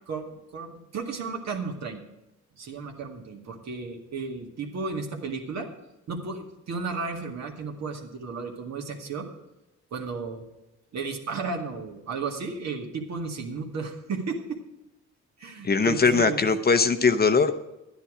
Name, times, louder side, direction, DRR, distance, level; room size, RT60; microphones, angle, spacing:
voice 1, 0.1-2.0 2.6-5.7 6.1-9.3 9.9-10.5 10.9-14.6 15.4-16.4, right 4 dB, 60° right, 2 dB, 2.1 m, -34 dB
voice 2, 15.6-17.5, left 4 dB, 30° left, 9 dB, 0.8 m, -21 dB
11.5 x 10.0 x 5.0 m, 0.98 s
cardioid pair, 90°, 30 cm